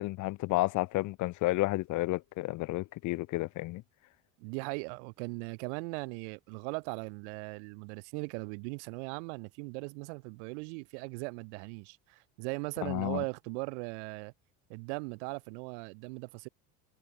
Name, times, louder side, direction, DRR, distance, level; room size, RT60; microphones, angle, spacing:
voice 1, 0.0-3.8 12.8-13.2, left 19 dB, 60° left, 1.1 m, -31 dB
voice 2, 4.4-14.3 14.7-16.5, right 33 dB, 85° right, 2.0 m, -39 dB
supercardioid pair, 105°, 33 cm